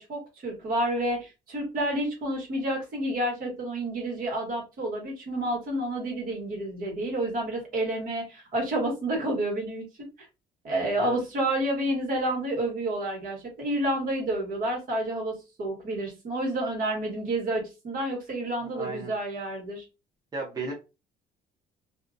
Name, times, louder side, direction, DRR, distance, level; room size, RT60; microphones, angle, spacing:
voice 1, 0.0-10.1 10.6-19.8, right 1 dB, 55° right, 0 dB, 1.4 m, -29 dB
voice 2, 18.7-19.1 20.3-20.7, right 3 dB, 25° right, -2 dB, 0.8 m, -34 dB
2.7 x 2.3 x 2.5 m, 0.28 s
cardioid pair, 110°, 17 cm